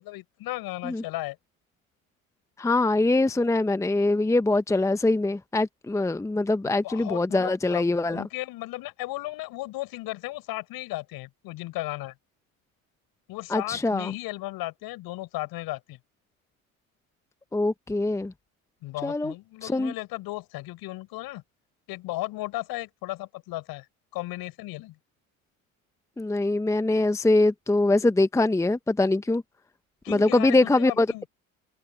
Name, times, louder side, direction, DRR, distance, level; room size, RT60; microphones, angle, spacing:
voice 1, 0.0-1.4 6.6-12.1 13.3-16.0 18.8-21.4 21.9-23.8 24.1-24.9 30.0-31.3, left 18 dB, 60° left, 6.4 m, -35 dB
voice 2, 2.6-8.2 13.5-14.1 17.5-18.3 19.0-19.3 19.6-19.9 26.2-29.4 30.1-31.2, left 2 dB, 5° left, 0.9 m, -23 dB
hypercardioid pair, 80°, 41 cm